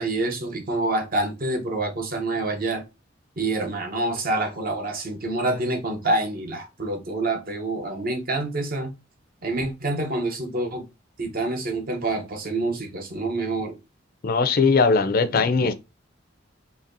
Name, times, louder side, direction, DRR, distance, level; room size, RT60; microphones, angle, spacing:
voice 1, 0.0-2.8 3.4-8.9 9.4-10.9 11.2-13.8, right 2 dB, 50° right, 0.8 m, -27 dB
voice 2, 14.2-15.7, left 4 dB, 50° left, 0.4 m, -20 dB
4.1 x 2.8 x 2.6 m
head